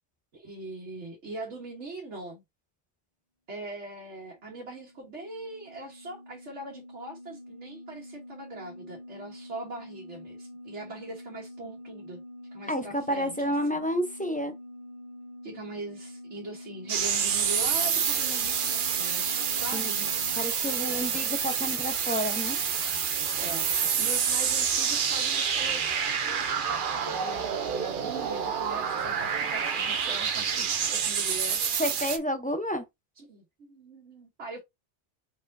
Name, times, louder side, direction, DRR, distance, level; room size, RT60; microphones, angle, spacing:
voice 1, 0.3-2.4 3.5-12.2 12.5-13.8 15.4-20.0 20.6-21.3 23.4-31.6 33.2-34.6, right 2 dB, 85° right, 1.6 m, -42 dB
sound 1, 4.3-20.4, left 1 dB, 35° right, 1.7 m, -46 dB
voice 2, 12.7-14.5 19.7-19.9 20.4-22.6 31.8-32.8, equal, 10° left, 0.5 m, -30 dB
sound 2, 16.9-32.2, right 7 dB, 55° right, 0.8 m, -28 dB
4.4 x 4.3 x 2.6 m
omnidirectional pair, 1.2 m